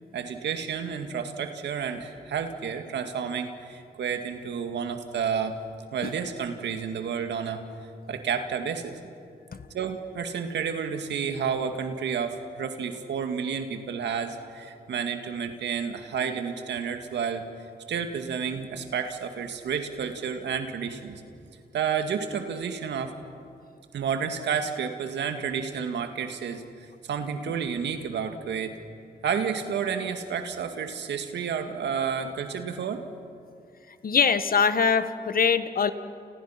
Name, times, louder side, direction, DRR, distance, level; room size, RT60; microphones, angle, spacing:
voice 1, 0.1-5.6 5.9-7.6 8.1-9.0 9.7-17.5 17.9-21.2 21.7-23.2 23.9-28.7 29.2-33.0, right 7 dB, 85° right, 6 dB, 2.0 m, -30 dB
voice 2, 34.0-35.9, left 6 dB, 55° left, 11 dB, 1.4 m, -22 dB
29.5 x 29.5 x 5.9 m, 2.5 s
cardioid pair, 60°, 18 cm